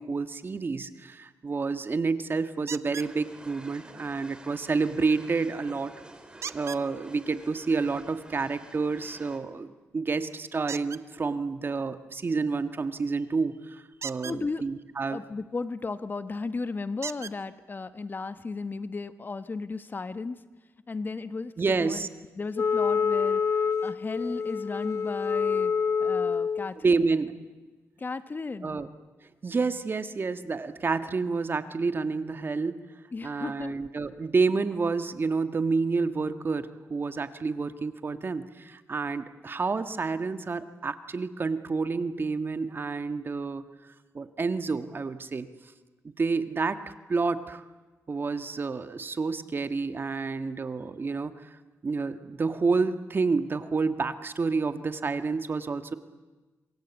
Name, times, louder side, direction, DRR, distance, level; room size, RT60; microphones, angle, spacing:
voice 1, 0.0-5.9 6.5-15.2 21.6-22.1 26.8-27.3 28.6-28.9 29.4-32.8 33.2-43.6 44.1-45.5 46.2-46.8 47.1-47.6 48.1-51.3 51.8-55.9, right 4 dB, 45° right, 10 dB, 1.6 m, -29 dB
sound 1, 2.7-3.1 6.4-6.8 10.7-11.0 13.9-14.4 16.1-16.2 17.0-17.4 18.4-18.5 18.9-19.0, right 7 dB, 60° right, 0.8 m, -37 dB
sound 2, 3.0-9.4, right 1 dB, 15° right, 3.5 m, -49 dB
voice 2, 14.2-14.6 15.1-20.4 20.9-22.1 22.3-25.7 26.0-27.0 28.0-28.8 33.1-33.7, left 4 dB, 35° left, 12 dB, 1.1 m, -35 dB
Wind instrument woodwind instrument, 22.6-26.7, left 6 dB, 55° left, 0.8 m, -27 dB
27.0 x 22.5 x 8.3 m, 1.2 s
cardioid pair, 80°, 5 cm